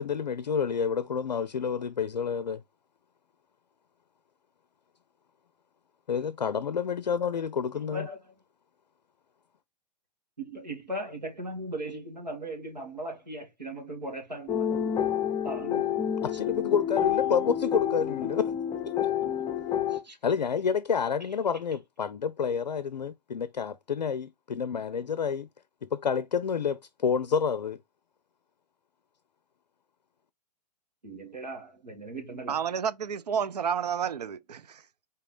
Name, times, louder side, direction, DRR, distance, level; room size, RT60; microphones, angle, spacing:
voice 1, 0.0-2.6 6.1-8.1 16.2-18.5 20.2-25.5 25.8-27.8, left 6 dB, 80° left, 0.5 m, -29 dB
voice 2, 10.4-15.9 19.9-20.2 31.0-32.6, right 1 dB, 90° right, 1.9 m, -38 dB
sound 1, 14.5-20.0, left 9 dB, 15° left, 0.6 m, -29 dB
voice 3, 32.5-34.8, right 7 dB, 75° right, 0.5 m, -30 dB
4.1 x 3.8 x 3.1 m
figure-of-eight pair, 110°, 21 cm